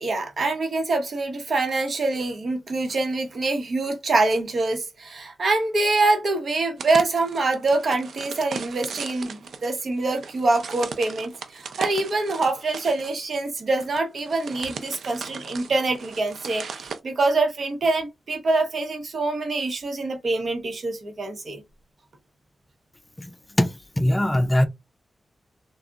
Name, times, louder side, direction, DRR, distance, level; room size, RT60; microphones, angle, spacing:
voice 1, 0.0-21.6, right 3 dB, 55° right, 0.7 m, -25 dB
sound 1, 6.8-17.0, right 5 dB, 80° right, 0.4 m, -37 dB
voice 2, 23.2-24.7, left 1 dB, 15° left, 0.3 m, -22 dB
3.5 x 2.0 x 2.3 m
wide cardioid pair, 110°, 0 cm